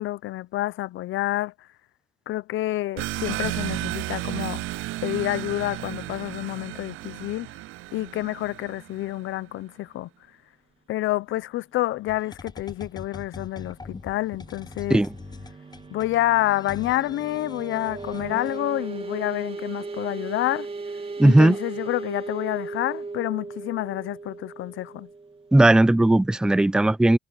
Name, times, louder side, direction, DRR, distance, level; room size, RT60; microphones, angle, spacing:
voice 1, 0.0-1.5 2.3-4.6 5.0-7.5 7.9-10.1 10.9-15.0 15.9-20.7 21.2-25.1, left 15 dB, 80° left, 0.7 m, -28 dB
sound 1, 3.0-9.2, right 18 dB, 85° right, 0.4 m, -33 dB
sound 2, 12.1-18.6, left 4 dB, 20° left, 1.0 m, -43 dB
sound 3, 13.5-26.1, right 3 dB, 30° right, 2.2 m, -37 dB
voice 2, 21.2-21.6 25.5-27.2, right 1 dB, 5° right, 0.4 m, -17 dB
cardioid pair, 90°, 20 cm